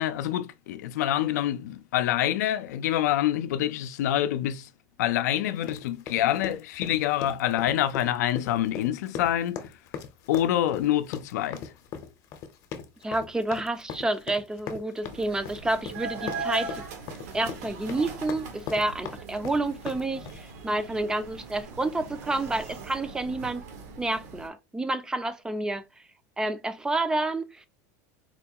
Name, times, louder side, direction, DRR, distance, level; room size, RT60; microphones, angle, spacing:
voice 1, 0.0-4.7 5.0-9.6 10.3-11.7, left 12 dB, 85° left, 0.5 m, -26 dB
sound 1, 5.6-20.5, left 7 dB, 40° left, 0.7 m, -39 dB
voice 2, 13.0-16.8 17.3-23.6 24.0-25.8 26.4-27.7, right 2 dB, 10° right, 0.4 m, -29 dB
sound 2, 15.0-24.5, right 4 dB, 75° right, 1.0 m, -40 dB
4.2 x 2.3 x 2.8 m
supercardioid pair, 140°, 9 cm